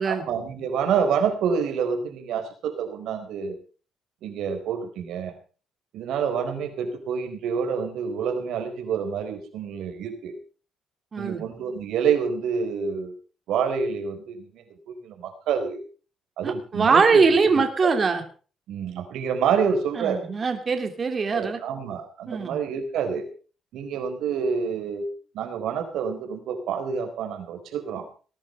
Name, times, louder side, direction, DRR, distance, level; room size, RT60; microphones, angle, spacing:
voice 1, 0.0-3.6 4.2-5.3 5.9-10.3 11.2-13.1 13.5-15.8 16.4-17.4 18.7-20.3 21.3-23.2 23.7-25.1 25.3-28.1, right 6 dB, 80° right, 6 dB, 4.4 m, -27 dB
voice 2, 11.1-11.4 16.4-18.2 20.0-21.6 22.3-22.6, right 4 dB, 40° right, 6 dB, 2.8 m, -22 dB
19.5 x 11.0 x 5.5 m, 0.39 s
cardioid pair, 90°, 0 cm